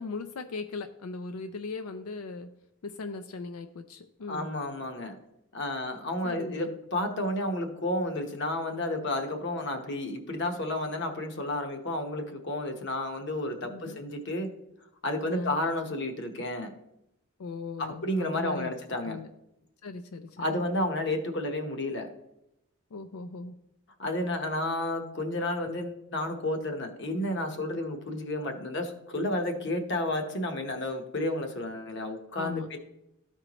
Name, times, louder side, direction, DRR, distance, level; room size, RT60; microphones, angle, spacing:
voice 1, 0.0-2.5 2.8-4.5 6.2-6.7 13.7-14.0 15.3-15.6 17.4-18.7 19.0-19.3 19.8-20.6 22.9-23.6 32.3-32.8, left 3 dB, 85° left, 8 dB, 0.5 m, -38 dB
voice 2, 4.3-5.2 5.5-14.5 15.0-16.7 17.8-19.2 20.4-22.1 24.0-32.8, left 1 dB, 55° left, 5 dB, 1.0 m, -31 dB
13.5 x 4.5 x 3.0 m, 0.83 s
head